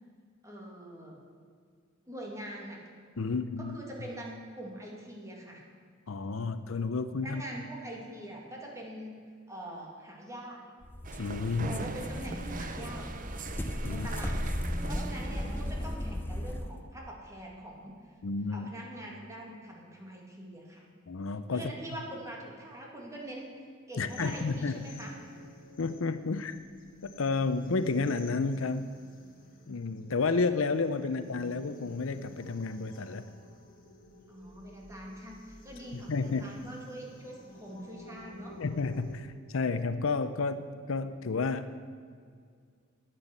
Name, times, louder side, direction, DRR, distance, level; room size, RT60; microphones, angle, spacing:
voice 1, 0.4-1.2 2.1-2.8 3.6-5.6 7.2-9.2 9.5-10.7 11.6-13.1 13.9-14.4 14.8-17.9 18.5-20.9 21.5-25.2 34.3-38.6, right 1 dB, 15° right, -2 dB, 2.5 m, -43 dB
voice 2, 3.2-3.8 6.1-7.4 11.2-11.8 13.8-14.1 18.2-18.7 21.1-21.7 24.0-24.8 25.8-26.5 27.0-28.9 29.7-33.3 35.9-36.5 38.6-41.7, left 4 dB, 70° left, 12 dB, 0.6 m, -31 dB
sound 1, 10.8-16.8, equal, 10° left, 0.6 m, -36 dB
sound 2, 11.0-16.0, right 4 dB, 40° right, 0.7 m, -42 dB
sound 3, 24.0-39.2, left 1 dB, 45° left, 2.0 m, -51 dB
11.0 x 9.2 x 8.0 m, 2.1 s
head